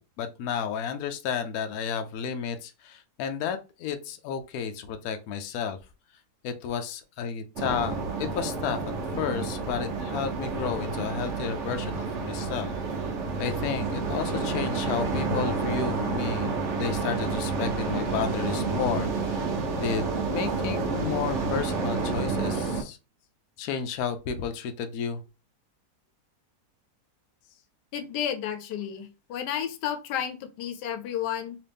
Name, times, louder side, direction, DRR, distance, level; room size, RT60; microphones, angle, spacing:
voice 1, 0.0-5.8 6.4-8.8 9.2-12.7 13.4-19.5 19.8-23.0 23.6-25.2, left 7 dB, 70° left, 7 dB, 1.0 m, -32 dB
sound 1, 7.6-22.8, right 4 dB, 55° right, 0.9 m, -29 dB
voice 2, 27.9-31.6, left 9 dB, 90° left, 8 dB, 1.2 m, -32 dB
3.0 x 2.9 x 3.3 m, 0.29 s
omnidirectional pair, 1.7 m